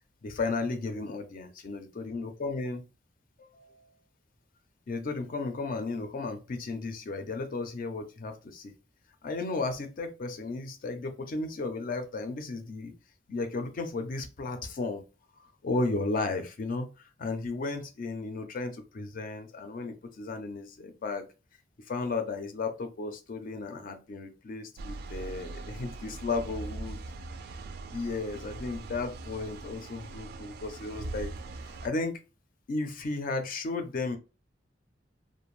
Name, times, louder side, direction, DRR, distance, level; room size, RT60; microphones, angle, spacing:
voice 1, 0.2-2.8 3.4-3.9 4.9-8.7 9.2-12.9 13.3-15.0 15.4-21.3 21.9-27.0 27.9-31.3 31.6-32.2 32.7-34.2, left 3 dB, 50° left, 7 dB, 0.4 m, -34 dB
sound 1, 24.8-31.9, right 2 dB, 55° right, 0.3 m, -41 dB
2.5 x 2.2 x 3.0 m, 0.31 s
head